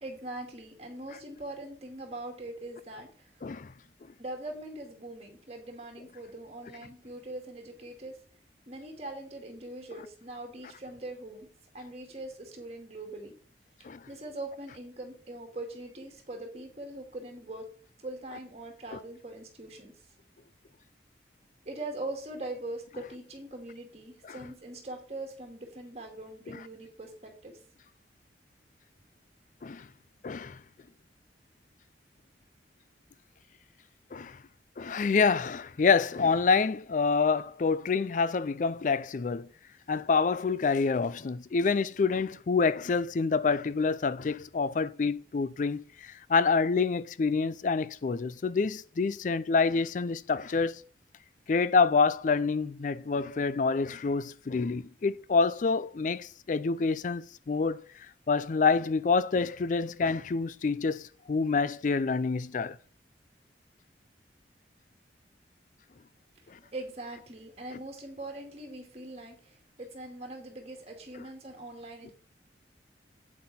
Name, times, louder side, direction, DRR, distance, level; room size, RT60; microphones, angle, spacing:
voice 1, 0.0-3.3 4.2-8.2 8.7-11.5 11.7-13.3 13.8-17.7 18.0-19.9 21.6-27.5 66.7-72.1, right 2 dB, 35° right, 2.4 m, -42 dB
voice 2, 3.4-3.7 13.8-14.0 18.9-19.0 29.6-29.9 30.2-30.6 34.1-34.4 34.8-39.5 39.9-50.8 51.5-57.8 58.3-62.8 66.5-66.6, left 4 dB, 45° left, 0.4 m, -27 dB
8.7 x 7.6 x 4.3 m
head